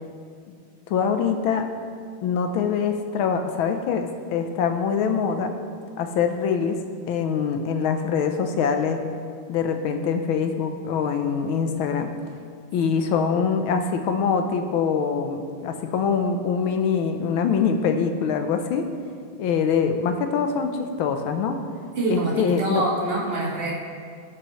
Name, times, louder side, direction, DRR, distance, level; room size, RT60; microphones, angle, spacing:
voice 1, 0.9-1.6 2.2-5.5 6.0-6.8 7.1-9.0 9.5-12.1 12.7-18.9 19.4-21.6 22.1-22.8, left 6 dB, 85° left, 6 dB, 1.6 m, -24 dB
voice 2, 22.0-23.7, right 2 dB, 30° right, -4 dB, 1.8 m, -26 dB
16.5 x 7.7 x 3.1 m, 2.2 s
omnidirectional pair, 2.2 m